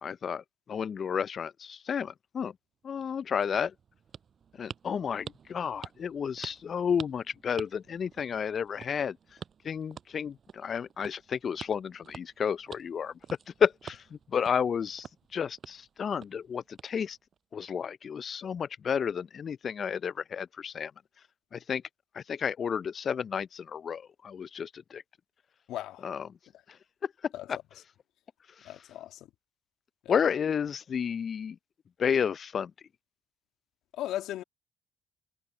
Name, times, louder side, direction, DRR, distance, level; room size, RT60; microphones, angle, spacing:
voice 1, 0.0-2.5 2.8-3.7 4.6-9.2 9.6-13.2 13.6-17.2 17.5-20.9 21.5-21.8 22.1-25.0 26.0-26.4 26.7-26.8 27.0-27.6 28.6-28.7 30.1-31.6 32.0-32.7, left 7 dB, 50° left, 0.4 m, -31 dB
sound 1, 2.8-17.4, right 7 dB, 50° right, 5.7 m, -49 dB
voice 2, 25.7-26.1 27.3-27.5 28.6-29.3 30.0-30.1 33.9-34.4, left 13 dB, 70° left, 1.6 m, -37 dB
hypercardioid pair, 55°, 0 cm